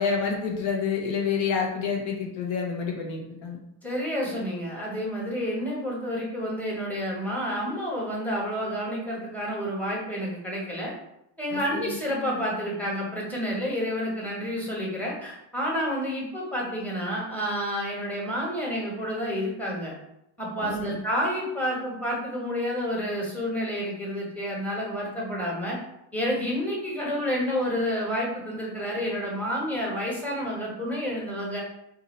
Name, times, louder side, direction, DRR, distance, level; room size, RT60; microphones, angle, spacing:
voice 1, 0.0-3.6 11.5-11.9 20.6-21.0, left 5 dB, 75° left, 0 dB, 1.0 m, -28 dB
voice 2, 3.8-10.9 11.4-19.9 20.4-25.8 26.1-31.6, equal, 5° left, -4 dB, 1.1 m, -29 dB
2.7 x 2.6 x 4.1 m, 0.82 s
cardioid pair, 110°, 47 cm